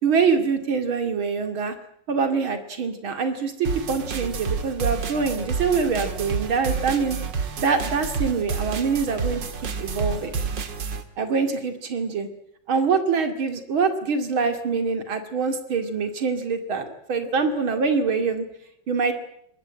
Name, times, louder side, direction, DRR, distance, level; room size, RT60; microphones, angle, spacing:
voice 1, 0.0-1.7 2.1-7.2 7.6-9.4 9.8-10.4 11.2-12.3 12.7-18.5 18.9-19.1, right 5 dB, 85° right, 7 dB, 3.2 m, -24 dB
sound 1, 3.6-11.0, right 5 dB, 65° right, 2.4 m, -29 dB
24.0 x 19.5 x 8.8 m, 0.74 s
omnidirectional pair, 2.2 m